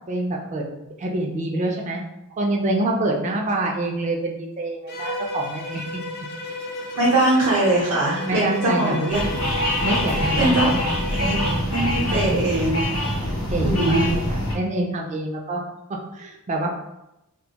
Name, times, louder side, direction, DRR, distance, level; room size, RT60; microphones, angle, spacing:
voice 1, 0.1-2.0 2.4-6.0 8.3-9.1 9.8-11.2 12.1-12.5 13.5-15.6 15.9-16.8, right 2 dB, 30° right, 0 dB, 0.3 m, -26 dB
Bowed string instrument, 4.9-11.6, left 2 dB, 45° left, 0.4 m, -33 dB
voice 2, 6.9-9.2 10.4-10.7 11.1-11.4 11.7-12.9 13.6-14.2, right 1 dB, 80° right, -6 dB, 0.6 m, -21 dB
sound 1, 9.1-14.5, equal, 75° left, 0.8 m, -24 dB
2.1 x 2.1 x 2.7 m, 0.89 s
head